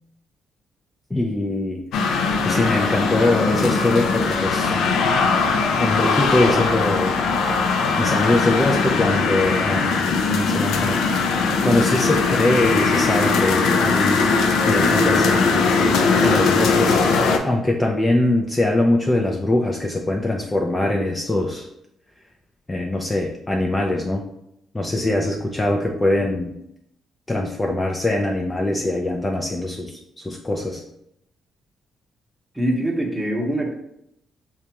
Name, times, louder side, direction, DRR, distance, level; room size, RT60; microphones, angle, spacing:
voice 1, 1.1-1.9 2.4-4.8 5.8-7.2 8.0-11.0 11.6-14.2 14.6-15.6 16.2-17.1 17.4-21.7 22.7-24.2 24.7-26.5 27.3-30.8, left 1 dB, 15° left, 1 dB, 0.4 m, -22 dB
sound 1, 1.9-17.4, left 4 dB, 80° left, 0.4 m, -20 dB
voice 2, 32.5-33.7, right 1 dB, 10° right, 0 dB, 0.9 m, -23 dB
4.9 x 2.3 x 2.8 m, 0.78 s
cardioid pair, 90°, 0 cm